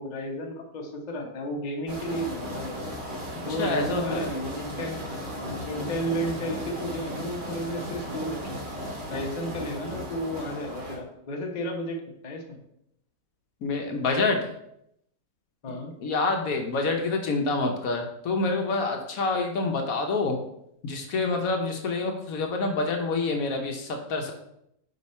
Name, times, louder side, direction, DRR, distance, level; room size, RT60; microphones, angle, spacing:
voice 1, 0.0-2.8 3.5-5.1 5.3-8.6 9.1-12.6 15.6-15.9, equal, 35° left, 1 dB, 0.8 m, -33 dB
sound 1, 1.9-11.0, equal, 35° right, 1.3 m, -36 dB
voice 2, 3.6-4.3 13.6-14.4 15.7-15.8 16.0-20.4 20.8-24.3, left 3 dB, 65° left, 3 dB, 1.2 m, -27 dB
5.3 x 4.5 x 4.2 m, 0.76 s
omnidirectional pair, 1.6 m